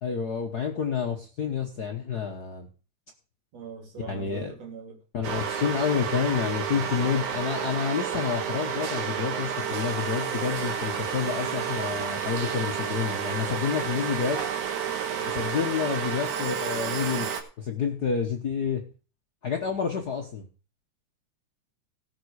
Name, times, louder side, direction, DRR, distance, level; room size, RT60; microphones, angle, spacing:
voice 1, 0.0-2.7 4.0-4.5 5.1-14.4 15.2-17.3 17.6-18.8 19.4-20.4, left 7 dB, 60° left, 1.0 m, -29 dB
voice 2, 3.5-5.0, right 6 dB, 60° right, 3.6 m, -44 dB
sound 1, 5.2-17.4, right 8 dB, 85° right, 2.7 m, -30 dB
18.0 x 6.1 x 4.8 m
omnidirectional pair, 3.4 m